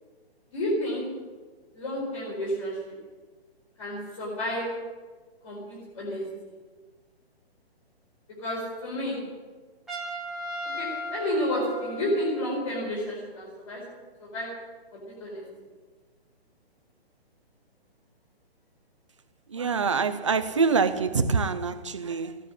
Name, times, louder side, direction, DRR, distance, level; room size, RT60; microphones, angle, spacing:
voice 1, 0.5-1.0 1.7-2.9 3.8-4.7 5.4-6.2 8.4-9.2 10.7-13.8 14.2-14.5 14.9-15.4, equal, 30° left, 4.6 m, -31 dB
Trumpet, 9.9-12.6, equal, ahead, 1.1 m, -36 dB
voice 2, 19.5-22.4, right 5 dB, 30° right, 0.7 m, -25 dB
16.0 x 9.8 x 8.9 m
hypercardioid pair, 175°, 32 cm